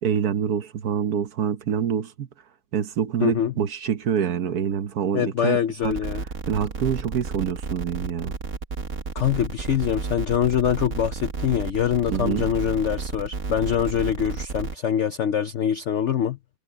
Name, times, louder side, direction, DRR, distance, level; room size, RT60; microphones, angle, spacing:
voice 1, 0.0-2.3 2.7-5.6 5.8-5.9 6.5-8.3 12.1-12.5, right 8 dB, 60° right, 1.4 m, -26 dB
voice 2, 3.2-3.5 5.1-6.2 9.1-16.4, left 9 dB, 65° left, 0.7 m, -24 dB
sound 1, 5.8-14.8, right 4 dB, 45° right, 1.8 m, -32 dB
omnidirectional pair, 1.9 m